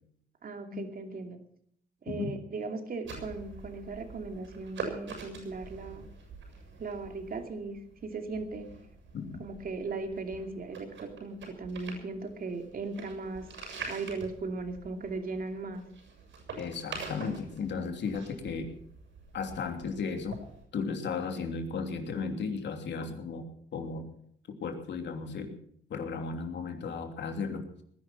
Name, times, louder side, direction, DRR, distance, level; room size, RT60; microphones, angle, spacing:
voice 1, 0.4-1.4 2.0-6.1 6.8-8.7 9.4-13.5 13.9-15.8, right 3 dB, 45° right, 5 dB, 2.7 m, -37 dB
sound 1, 3.0-20.6, right 4 dB, 75° right, 7.0 m, -45 dB
voice 2, 16.6-18.7 19.3-20.4 20.7-23.5 23.7-24.1 24.6-25.5 25.9-27.8, left 5 dB, 65° left, 4 dB, 3.0 m, -35 dB
19.5 x 11.0 x 5.9 m, 0.67 s
cardioid pair, 90°, 20 cm